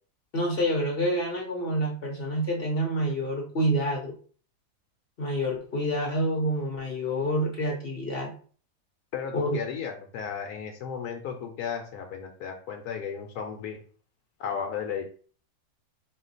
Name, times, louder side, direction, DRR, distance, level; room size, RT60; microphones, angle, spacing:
voice 1, 0.3-4.1 5.2-8.3 9.3-9.5, equal, 50° left, 0 dB, 0.7 m, -27 dB
voice 2, 9.1-13.8 14.4-15.0, left 7 dB, 75° left, 3 dB, 1.1 m, -34 dB
4.3 x 2.3 x 3.9 m, 0.43 s
omnidirectional pair, 1.7 m